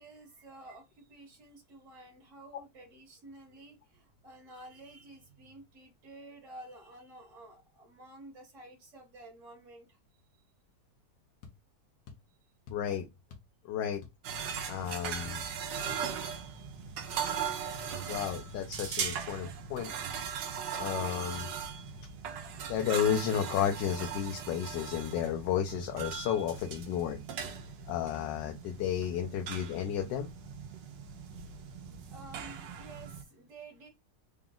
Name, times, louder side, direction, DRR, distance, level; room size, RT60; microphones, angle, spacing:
voice 1, 0.0-10.0 12.3-12.4 31.8-33.9, right 2 dB, 45° right, 1.4 m, -52 dB
sound 1, 11.4-11.6 12.1-12.3 12.7-12.9 13.3-13.5 13.8-14.3 14.6-14.7 15.2-15.4 15.9-16.0, left 5 dB, 70° left, 1.3 m, -50 dB
voice 2, 12.7-13.0 13.7-14.0 14.7-15.5 18.1-19.9 20.3-20.4 20.8-21.5 22.7-27.2 27.9-30.3, left 9 dB, 90° left, 1.2 m, -32 dB
sound 2, 14.2-33.2, right 7 dB, 85° right, 1.4 m, -39 dB
3.9 x 2.3 x 3.7 m
omnidirectional pair, 1.9 m